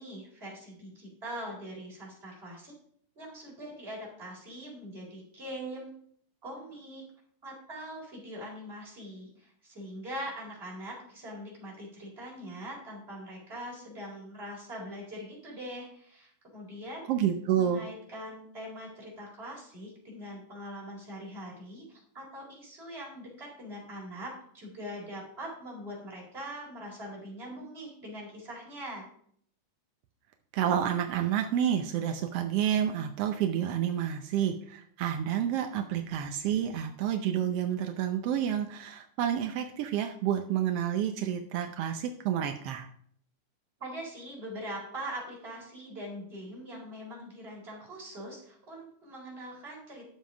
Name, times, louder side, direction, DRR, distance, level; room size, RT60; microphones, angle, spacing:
voice 1, 0.0-2.7 3.1-5.9 6.4-7.0 7.4-17.1 17.5-29.0 43.8-50.1, equal, 15° right, -3 dB, 4.3 m, -42 dB
voice 2, 17.1-17.8 30.5-42.9, right 9 dB, 80° right, 5 dB, 1.3 m, -29 dB
11.0 x 7.3 x 5.1 m, 0.62 s
omnidirectional pair, 3.7 m